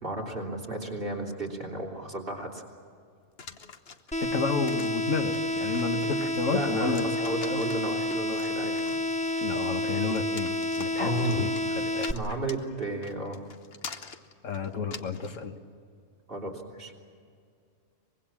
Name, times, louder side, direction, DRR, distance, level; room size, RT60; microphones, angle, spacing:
voice 1, 0.0-2.6 6.5-8.7 11.0-11.5 12.1-13.4 16.3-17.0, right 2 dB, 45° right, -1 dB, 3.6 m, -33 dB
sound 1, 3.4-15.4, left 5 dB, 55° left, 1.3 m, -45 dB
sound 2, 4.1-12.1, left 1 dB, 10° left, 0.5 m, -29 dB
voice 2, 4.2-7.1 7.4-7.6 9.4-11.5 11.9-12.1 14.4-15.5, left 4 dB, 85° left, 6 dB, 1.8 m, -31 dB
24.5 x 21.5 x 7.4 m, 2.3 s
omnidirectional pair, 1.3 m